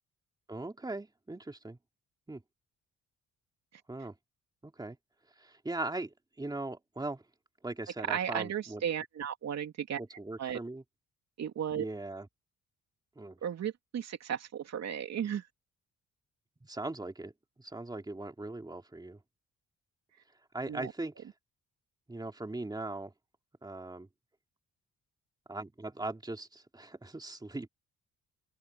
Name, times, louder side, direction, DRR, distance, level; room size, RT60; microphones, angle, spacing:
voice 1, 0.5-1.8 2.3-2.4 3.9-4.1 4.6-5.0 5.4-7.2 7.6-8.8 10.0-10.8 11.8-12.3 13.2-13.4 16.6-17.3 17.6-19.2 20.5-21.3 22.1-23.1 23.6-24.1 25.5-27.7, right 2 dB, 15° right, 3.1 m, -39 dB
voice 2, 8.1-10.0 10.4-10.6 11.4-11.8 13.4-15.5 20.7-20.9, right 9 dB, 60° right, 3.1 m, -35 dB
open air
cardioid pair, 90°, 30 cm